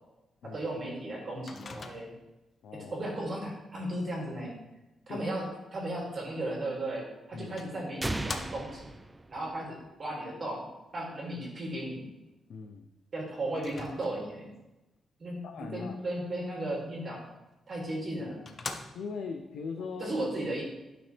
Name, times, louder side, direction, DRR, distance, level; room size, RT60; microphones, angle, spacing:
voice 1, 0.5-2.1 2.9-4.6 5.1-5.4 5.7-8.9 9.3-10.6 10.9-12.1 13.1-14.5 15.2-15.4 15.7-17.3 17.7-18.4 19.8-20.6, right 1 dB, 35° right, -3 dB, 2.6 m, -35 dB
Microwave oven, 1.5-2.4 6.7-6.8 7.6-8.9 13.6-14.5 17.6-17.7 18.1-18.2 18.5-19.3, left 4 dB, 35° left, 0.7 m, -42 dB
voice 2, 2.6-3.0 5.1-5.2 7.3-7.7 12.5-12.9 15.4-16.0 18.9-20.2, left 5 dB, 70° left, 3 dB, 0.7 m, -40 dB
sound 1, 8.0-9.9, right 2 dB, 10° right, 0.3 m, -36 dB
11.5 x 6.1 x 3.4 m, 0.99 s
wide cardioid pair, 155°, 0 cm